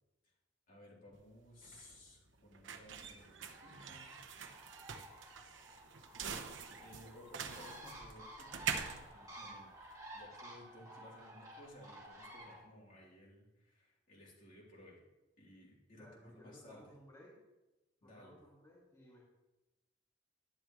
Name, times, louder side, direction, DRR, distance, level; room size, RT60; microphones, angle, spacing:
voice 1, 0.7-4.1 6.8-9.7 10.1-15.0 15.4-16.9 18.0-18.4, left 1 dB, 45° left, -4 dB, 3.4 m, -58 dB
sound 1, 1.1-10.2, right 6 dB, 85° right, 0.9 m, -45 dB
Bird, 3.4-12.6, right 1 dB, 20° right, 2.2 m, -53 dB
voice 2, 16.0-17.3 18.0-19.2, left 1 dB, 20° left, -7 dB, 2.4 m, -58 dB
11.5 x 11.0 x 3.1 m, 1.0 s
head